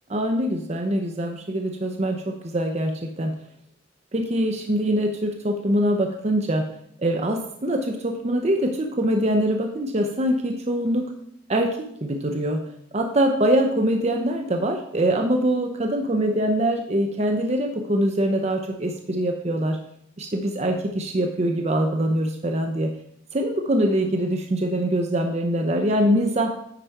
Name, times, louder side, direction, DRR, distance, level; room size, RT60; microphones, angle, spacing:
voice 1, 0.1-3.3 4.1-6.7 7.0-11.1 11.5-12.6 12.9-19.8 20.2-22.9 23.3-26.5, right 1 dB, 35° right, 3 dB, 0.7 m, -23 dB
9.8 x 5.0 x 4.5 m, 0.70 s
head